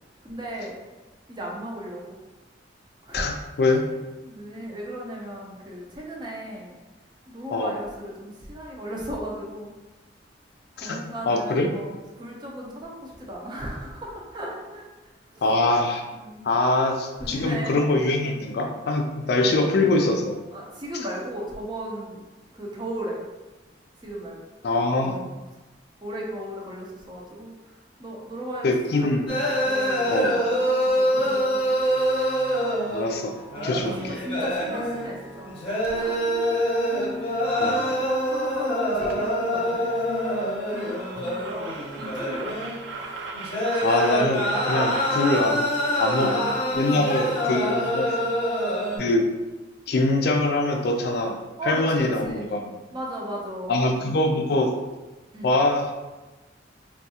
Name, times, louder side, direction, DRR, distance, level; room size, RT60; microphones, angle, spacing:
voice 1, 0.2-0.8 1.3-2.2 3.0-3.4 4.2-6.7 7.3-9.7 10.8-14.9 15.3-15.5 16.1-16.5 17.2-17.8 19.3-19.5 20.5-22.2 22.5-23.2 24.0-24.4 25.0-25.4 26.0-29.3 29.6-31.7 33.5-35.5 35.9-36.6 36.9-37.3 37.7-42.5 46.1-48.3 48.9-49.1 51.6-52.5 52.9-53.7 55.3-55.5, equal, 25° right, -2 dB, 0.5 m, -36 dB
voice 2, 3.1-3.8 7.5-7.8 10.8-11.0 11.3-11.7 15.4-16.0 16.4-20.4 24.6-25.2 28.6-29.3 30.1-30.4 32.9-33.4 33.6-34.2 37.6-37.9 43.8-45.6 46.0-46.5 46.7-48.2 49.0-49.3 49.9-51.4 51.6-52.7 53.7-54.7 55.4-55.8, left 2 dB, 60° left, 3 dB, 0.4 m, -23 dB
sound 1, 29.3-49.0, equal, 30° left, 0.7 m, -25 dB
sound 2, 35.8-36.0 38.5-38.6 38.9-39.2 39.4-45.4, right 4 dB, 80° right, 0.4 m, -39 dB
3.5 x 2.3 x 2.8 m, 1.1 s
head